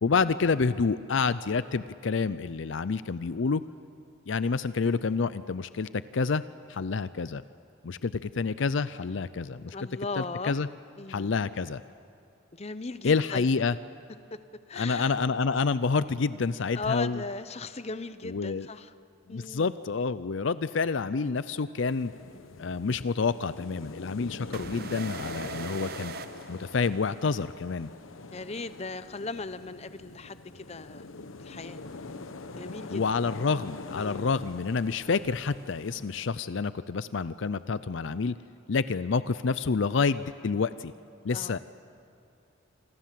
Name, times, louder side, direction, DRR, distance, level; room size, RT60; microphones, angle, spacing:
voice 1, 0.0-3.6 4.3-6.4 6.7-7.4 7.8-9.8 10.2-10.7 11.1-11.8 13.0-13.8 14.7-17.2 18.2-18.7 19.3-22.1 22.6-26.1 26.5-27.9 32.9-38.4 38.7-40.9 41.2-41.6, left 4 dB, 65° left, 15 dB, 0.5 m, -28 dB
voice 2, 9.7-10.6 11.0-11.4 12.5-13.5 14.7-15.2 16.7-18.9 19.3-19.7 28.3-31.1 31.4-31.8 32.5-33.0 33.9-34.3 41.3-41.6, left 3 dB, 30° left, 13 dB, 0.8 m, -37 dB
sound 1, 21.9-36.3, left 3 dB, 80° left, 1.1 m, -44 dB
sound 2, 24.5-27.3, right 6 dB, 50° right, 0.5 m, -41 dB
27.0 x 25.0 x 7.6 m, 2.7 s
head